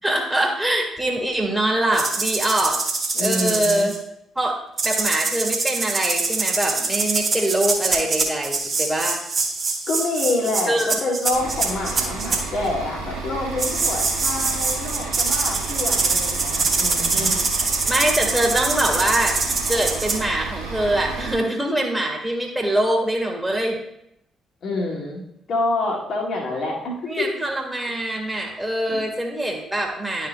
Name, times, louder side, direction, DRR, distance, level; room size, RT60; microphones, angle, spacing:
voice 1, 0.0-2.8 3.2-3.9 4.4-4.6 4.8-9.2 10.7-10.9 17.1-17.5 17.9-19.4 19.7-23.8 27.0-30.3, right 1 dB, 5° right, 0 dB, 2.2 m, -23 dB
sound 1, 1.9-4.0 4.8-12.4 13.6-20.2, right 4 dB, 40° right, 1.9 m, -24 dB
voice 2, 3.1-3.9 9.9-17.3 24.6-25.2 25.5-27.3 28.9-29.1, left 2 dB, 50° left, -2 dB, 2.0 m, -27 dB
Bus / Idling, 11.3-21.3, right 4 dB, 80° right, 1.3 m, -32 dB
12.0 x 5.8 x 2.2 m, 0.78 s
figure-of-eight pair, 40°, 0 cm